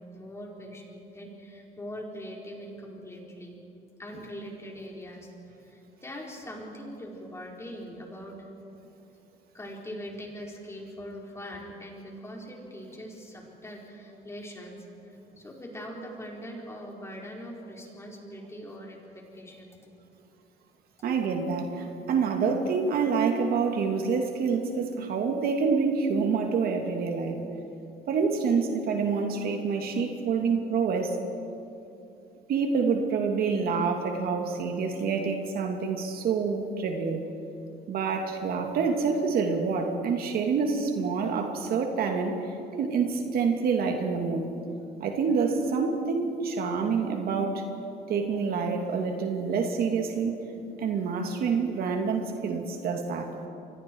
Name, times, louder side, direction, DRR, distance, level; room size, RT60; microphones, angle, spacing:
voice 1, 0.0-3.6 4.0-5.3 5.6-8.5 9.5-19.8, equal, 15° left, -1 dB, 4.8 m, -42 dB
voice 2, 21.0-27.4 28.1-31.2 32.5-37.2 37.9-44.5 45.0-47.7 48.1-50.3 50.8-53.3, right 5 dB, 65° right, 3 dB, 2.5 m, -27 dB
29.0 x 23.5 x 4.8 m, 2.8 s
cardioid pair, 110°, 17 cm